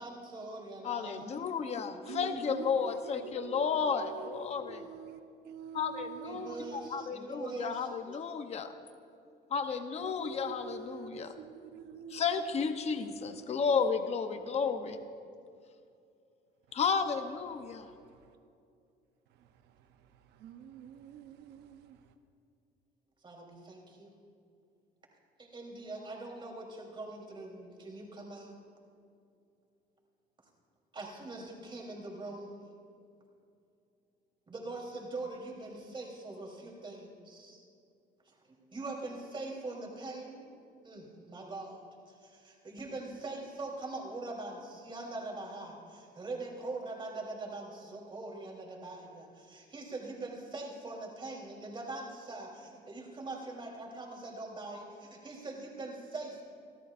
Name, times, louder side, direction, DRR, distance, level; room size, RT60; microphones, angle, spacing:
voice 1, 0.0-1.5 2.1-2.2 3.1-3.7 6.2-8.2 23.2-24.1 25.4-28.5 30.9-32.7 34.5-37.6 38.6-40.4 40.8-41.8 42.1-56.4, right 2 dB, 30° right, -1 dB, 3.6 m, -43 dB
voice 2, 0.8-4.8 5.7-8.7 9.5-11.3 12.1-15.0 16.7-17.9, left 6 dB, 40° left, 8 dB, 0.8 m, -33 dB
voice 3, 2.1-7.1 7.5-7.9 9.6-9.7 10.0-13.7 14.4-15.0 16.7-16.8 17.7-18.3 19.3-22.1, right 7 dB, 80° right, 7 dB, 0.9 m, -47 dB
27.5 x 13.0 x 2.6 m, 2.5 s
cardioid pair, 110°, 17 cm